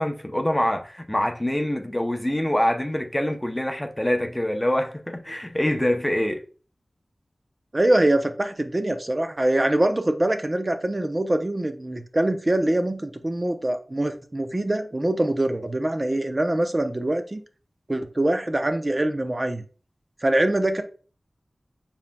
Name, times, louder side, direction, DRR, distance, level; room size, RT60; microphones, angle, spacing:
voice 1, 0.0-6.4, left 1 dB, 15° left, 0.6 m, -25 dB
voice 2, 7.7-17.4 17.9-19.6 20.2-20.8, right 1 dB, 35° right, 0.6 m, -23 dB
7.1 x 2.9 x 2.2 m
wide cardioid pair, 65°, 0 cm